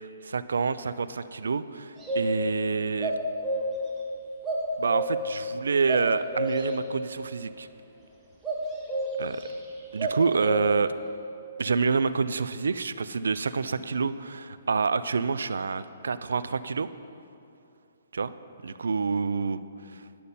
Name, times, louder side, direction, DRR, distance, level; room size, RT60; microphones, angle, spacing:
voice 1, 0.0-3.2 4.8-7.7 9.2-9.5 9.9-10.9 11.6-16.9 18.1-18.3 18.6-19.6 19.9-20.0, right 5 dB, 85° right, 14 dB, 0.3 m, -27 dB
sound 1, 2.0-2.6 3.0-3.9 4.4-5.4 5.9-6.8 8.4-9.5 10.0-10.9, right 1 dB, 10° right, 1.1 m, -29 dB
10.0 x 6.7 x 4.2 m, 2.6 s
hypercardioid pair, 155°, 0 cm